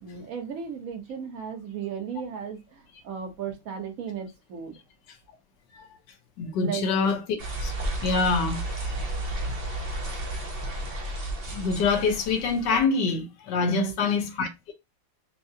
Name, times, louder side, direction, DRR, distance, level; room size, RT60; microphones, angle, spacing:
voice 1, 0.0-4.7 6.6-7.1 13.6-13.9, right 7 dB, 50° right, 1.2 m, -35 dB
voice 2, 6.4-7.2 7.6-7.7 8.0-9.0 9.8-10.4 11.5-14.7, left 4 dB, 60° left, 1.4 m, -26 dB
sound 1, 7.4-12.8, right 1 dB, 80° right, 0.5 m, -32 dB
6.0 x 2.2 x 2.8 m
omnidirectional pair, 2.4 m